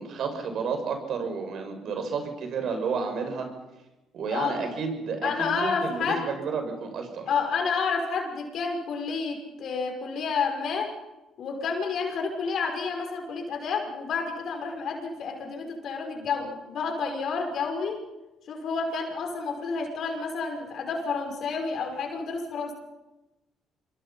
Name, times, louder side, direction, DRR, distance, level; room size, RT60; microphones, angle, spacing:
voice 1, 0.0-3.5 4.1-7.3, right 5 dB, 65° right, 5 dB, 6.3 m, -31 dB
voice 2, 5.2-6.3 7.3-10.9 11.4-18.0 18.5-22.7, left 5 dB, 65° left, 3 dB, 5.9 m, -30 dB
26.0 x 23.5 x 5.8 m, 1.0 s
supercardioid pair, 65°, 0 cm